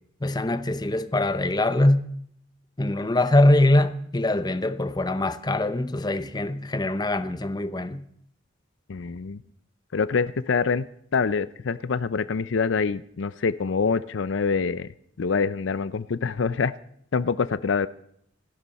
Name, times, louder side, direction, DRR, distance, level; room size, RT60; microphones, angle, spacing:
voice 1, 0.2-2.0 2.8-8.0, left 1 dB, 20° left, 0.7 m, -23 dB
voice 2, 8.9-9.4 9.9-10.9 11.1-14.9 15.2-16.7 17.1-17.9, left 5 dB, 70° left, 0.5 m, -25 dB
27.0 x 12.0 x 4.2 m
head